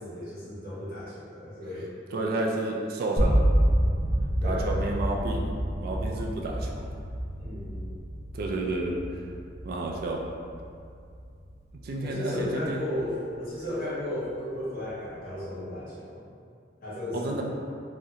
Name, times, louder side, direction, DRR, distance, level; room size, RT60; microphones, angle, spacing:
voice 1, 0.0-1.9 4.4-4.8 7.4-7.9 12.0-16.2 16.8-17.4, left 1 dB, 55° left, -9 dB, 1.0 m, -34 dB
voice 2, 2.1-3.4 4.4-5.4 5.8-6.9 8.3-9.0 9.6-10.2 11.8-12.9 17.1-17.4, right 2 dB, 55° right, -1 dB, 0.3 m, -30 dB
sound 1, 3.2-13.2, equal, 15° left, 0.7 m, -29 dB
3.6 x 2.1 x 2.8 m, 2.4 s
head